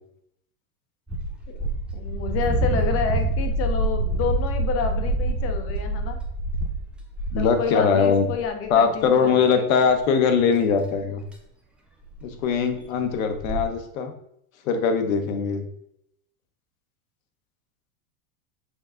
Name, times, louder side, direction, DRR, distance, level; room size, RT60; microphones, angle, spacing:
sound 1, 1.1-7.6 8.3-8.7 9.0-9.1 9.9-10.0 10.9-11.0 11.3-11.4 12.1-12.3 12.5-12.6 12.8-12.9 13.2-13.6, right 2 dB, 5° right, 0.4 m, -26 dB
voice 1, 1.9-6.2 7.4-9.7, left 7 dB, 30° left, 6 dB, 0.9 m, -29 dB
voice 2, 7.3-8.3 8.7-11.2 12.2-14.1 14.6-15.6, left 6 dB, 65° left, 7 dB, 1.1 m, -21 dB
6.5 x 3.9 x 3.7 m, 0.76 s
supercardioid pair, 135°, 43 cm